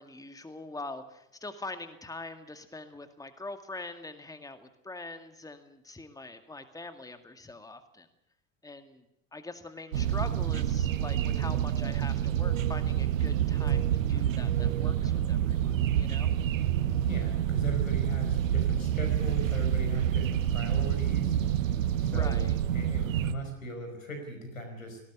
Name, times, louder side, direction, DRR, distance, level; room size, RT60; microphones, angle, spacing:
voice 1, 0.0-8.1 8.6-9.0 9.3-16.3 22.1-22.6, left 2 dB, 10° left, 8 dB, 2.1 m, -43 dB
sound 1, 9.9-23.3, right 10 dB, 75° right, 1.1 m, -28 dB
voice 2, 17.0-21.4 22.0-25.0, equal, 85° left, 4 dB, 5.3 m, -38 dB
19.0 x 17.5 x 9.4 m, 0.80 s
figure-of-eight pair, 65°, 39 cm